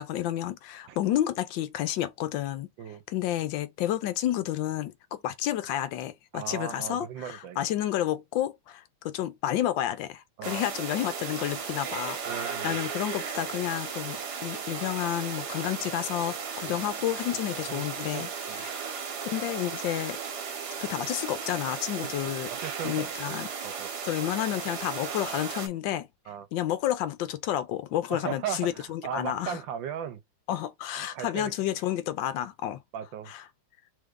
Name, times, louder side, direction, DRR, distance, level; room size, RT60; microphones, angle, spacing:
voice 1, 0.0-2.7 3.1-18.8 19.2-20.2 20.8-22.5 22.8-23.5 24.0-26.1 26.5-29.6 30.5-32.8 33.3-33.4, left 12 dB, 80° left, 1.3 m, -30 dB
voice 2, 6.3-7.6 10.4-10.6 12.3-12.8 16.7-16.8 17.7-17.8 18.1-18.7 22.0-23.9 26.3-26.5 28.1-30.2 30.9-31.5 32.9-33.3, right 9 dB, 80° right, 1.4 m, -37 dB
sound 1, 10.4-25.7, right 6 dB, 65° right, 1.5 m, -36 dB
3.5 x 3.3 x 3.6 m
omnidirectional pair, 2.1 m